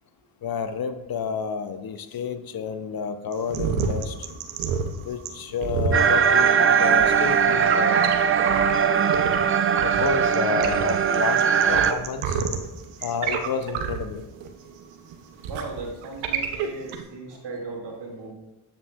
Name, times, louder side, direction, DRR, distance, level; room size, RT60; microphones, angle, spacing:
voice 1, 0.4-4.2 5.0-7.9 9.8-11.4 11.7-12.4 13.0-14.2, left 6 dB, 50° left, 0.6 m, -30 dB
sound 1, 3.3-9.4 9.7-17.0, right 6 dB, 85° right, 0.7 m, -29 dB
sound 2, 5.9-11.9, right 7 dB, 30° right, 0.4 m, -20 dB
voice 2, 15.5-18.3, right 3 dB, 60° right, 2.0 m, -37 dB
8.1 x 7.2 x 2.3 m
hypercardioid pair, 45°, 48 cm